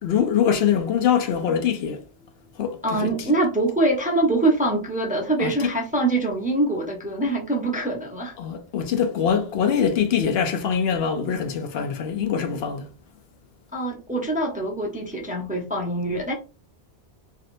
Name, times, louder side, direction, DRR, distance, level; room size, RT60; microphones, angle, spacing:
voice 1, 0.0-2.0 2.5-3.1 5.4-5.7 8.4-12.9, left 8 dB, 70° left, 0.8 m, -23 dB
voice 2, 2.8-8.3 13.7-16.3, right 2 dB, 10° right, 0.5 m, -24 dB
3.6 x 2.6 x 2.5 m
omnidirectional pair, 1.1 m